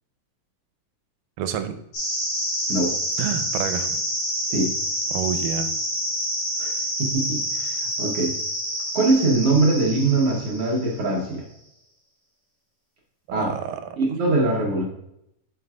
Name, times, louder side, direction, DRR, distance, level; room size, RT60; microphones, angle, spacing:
voice 1, 1.4-1.8 3.2-4.0 5.1-5.7 13.3-13.8, right 8 dB, 90° right, 8 dB, 2.2 m, -28 dB
sound 1, 1.9-11.1, equal, 45° left, 2.8 m, -28 dB
voice 2, 7.0-8.3 8.9-11.4 13.3-13.5 14.0-14.8, right 2 dB, 60° right, -3 dB, 1.7 m, -22 dB
7.7 x 5.8 x 2.4 m, 0.78 s
omnidirectional pair, 3.8 m